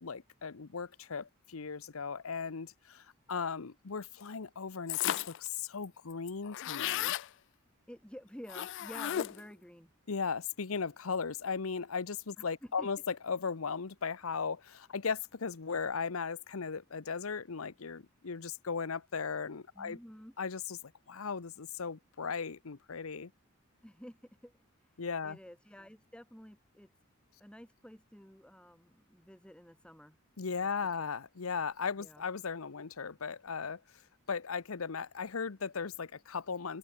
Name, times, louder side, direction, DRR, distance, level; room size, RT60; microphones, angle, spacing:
voice 1, 0.0-7.1 10.1-20.0 20.4-23.3 25.0-25.4 30.4-33.8 34.3-36.8, left 5 dB, 90° left, 0.8 m, -37 dB
sound 1, 4.9-5.5 5.8-5.9 6.1-7.3 8.5-9.5, left 12 dB, 60° left, 0.3 m, -34 dB
voice 2, 7.9-9.9 12.6-12.9 19.7-20.3 23.8-24.5 24.8-26.9 27.4-30.2 30.6-31.1 32.0-32.2, equal, 5° left, 2.9 m, -51 dB
open air
head